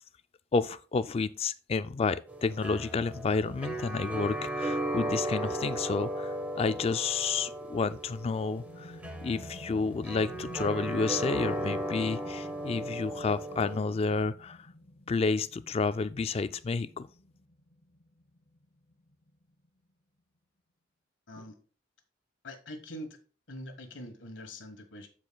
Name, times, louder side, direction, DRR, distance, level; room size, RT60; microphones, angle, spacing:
voice 1, 0.5-9.0 9.2-14.7 15.1-17.1, left 4 dB, 30° left, 0.3 m, -30 dB
sound 1, 2.3-13.8, right 1 dB, 10° right, 1.0 m, -36 dB
sound 2, 8.4-19.7, left 1 dB, 55° left, 1.4 m, -51 dB
voice 2, 22.4-23.2 23.5-25.1, left 1 dB, 80° left, 1.4 m, -43 dB
13.0 x 4.9 x 2.3 m
head